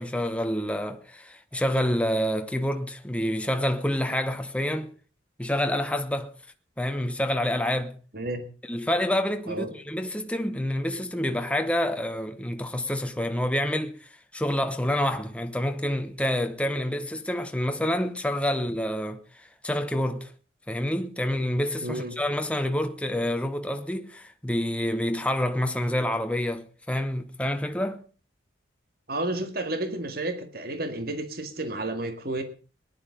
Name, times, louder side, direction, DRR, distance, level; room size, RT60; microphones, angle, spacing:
voice 1, 0.0-4.9 5.4-6.3 6.8-8.0 8.7-20.3 20.7-28.0, left 1 dB, 5° left, 1.0 m, -28 dB
voice 2, 21.8-22.2 29.1-32.4, right 2 dB, 55° right, 2.0 m, -31 dB
19.0 x 11.0 x 5.1 m
head